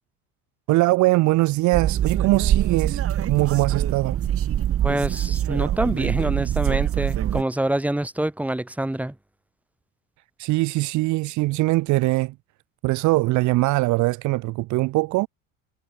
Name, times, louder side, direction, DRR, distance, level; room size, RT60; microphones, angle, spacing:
voice 1, 0.7-4.2 10.4-12.3 12.8-15.3, right 20 dB, 55° right, 0.6 m, -21 dB
sound 1, 1.7-7.4, right 11 dB, 40° right, 2.2 m, -24 dB
voice 2, 4.8-9.1, right 1 dB, 5° right, 2.8 m, -26 dB
cardioid pair, 145°, 35 cm